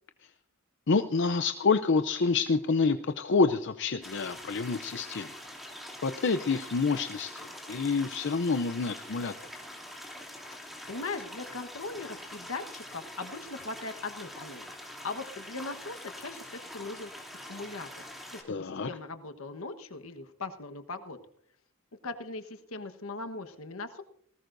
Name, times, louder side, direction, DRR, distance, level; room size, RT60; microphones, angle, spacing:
voice 1, 0.9-5.3 6.0-9.3 18.5-18.9, left 4 dB, 60° left, 9 dB, 0.6 m, -27 dB
sound 1, 4.0-18.4, left 1 dB, ahead, 2.9 m, -45 dB
voice 2, 10.9-17.1 17.5-17.9 18.3-21.2 22.0-24.0, left 3 dB, 75° left, 7 dB, 1.3 m, -39 dB
19.5 x 18.0 x 2.6 m, 0.66 s
head